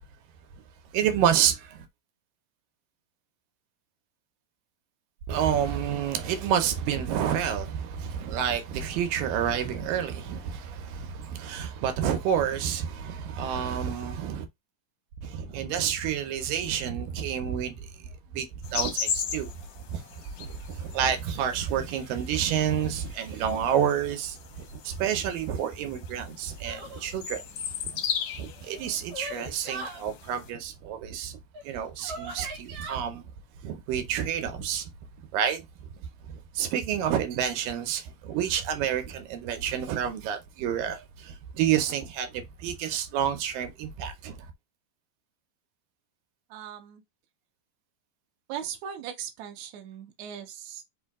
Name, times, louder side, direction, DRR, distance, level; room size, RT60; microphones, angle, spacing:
voice 1, 0.9-1.9 5.3-14.5 15.2-17.9 18.3-19.5 19.9-24.4 24.8-27.4 27.9-28.0 28.4-31.4 31.6-33.2 33.6-34.9 35.3-35.9 36.3-44.5, right 9 dB, 85° right, 2.5 m, -29 dB
sound 1, 18.6-30.5, left 7 dB, 75° left, 1.4 m, -37 dB
sound 2, 26.6-27.1 28.5-30.0 31.5-31.6 32.0-33.0, right 2 dB, 50° right, 2.8 m, -39 dB
voice 2, 46.5-47.0 48.5-50.8, right 9 dB, 65° right, 2.0 m, -39 dB
5.5 x 2.5 x 3.5 m
omnidirectional pair, 3.9 m